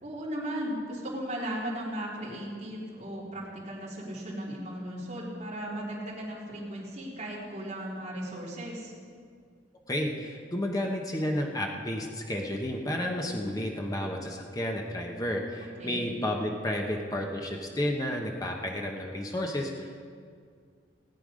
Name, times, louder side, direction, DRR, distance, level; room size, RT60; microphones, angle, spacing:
voice 1, 0.0-8.9 15.8-16.0, right 1 dB, 40° right, -6 dB, 3.7 m, -36 dB
voice 2, 9.9-19.9, left 1 dB, 20° left, 1 dB, 1.1 m, -31 dB
18.5 x 9.2 x 5.2 m, 2.1 s
head